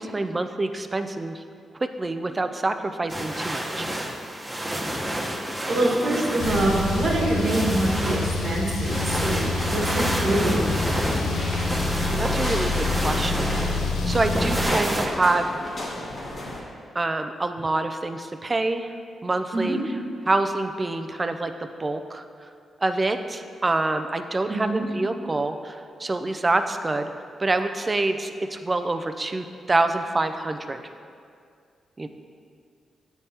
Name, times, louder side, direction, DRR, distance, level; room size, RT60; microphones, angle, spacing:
voice 1, 0.0-1.4 1.8-3.9 12.1-13.8 14.1-15.5 16.9-18.9 19.2-19.8 20.3-21.5 21.8-22.2 22.8-27.1 27.4-30.8 32.0-32.1, right 2 dB, 30° right, 8 dB, 0.4 m, -26 dB
sound 1, 3.1-15.1, right 1 dB, 10° right, 1.0 m, -30 dB
voice 2, 5.7-11.2 19.5-19.8 24.5-24.9, right 2 dB, 65° right, -4 dB, 1.2 m, -25 dB
Car, 6.4-14.7, left 3 dB, 85° left, 0.6 m, -27 dB
sound 2, 9.0-16.6, left 1 dB, 55° left, 1.4 m, -34 dB
8.2 x 3.4 x 4.3 m, 2.2 s
cardioid pair, 65°, 0 cm